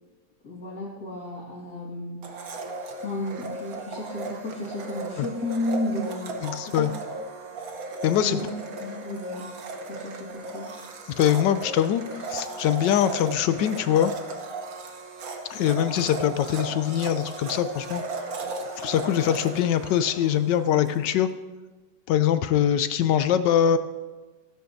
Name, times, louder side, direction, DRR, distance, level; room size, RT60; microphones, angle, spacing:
voice 1, 0.4-2.5 3.0-6.4 6.7-6.9 8.1-8.5 8.8-9.5 9.8-10.7, left 1 dB, 60° left, -6 dB, 2.4 m, -33 dB
Domestic sounds home sounds, 2.2-21.0, right 3 dB, 55° right, 1.4 m, -36 dB
voice 2, 6.4-6.9 8.0-8.4 11.2-12.0 12.3-14.1 15.5-18.0 18.8-21.3 22.1-23.8, left 10 dB, 80° left, 11 dB, 1.2 m, -23 dB
15.0 x 13.0 x 2.7 m, 1.2 s
omnidirectional pair, 2.0 m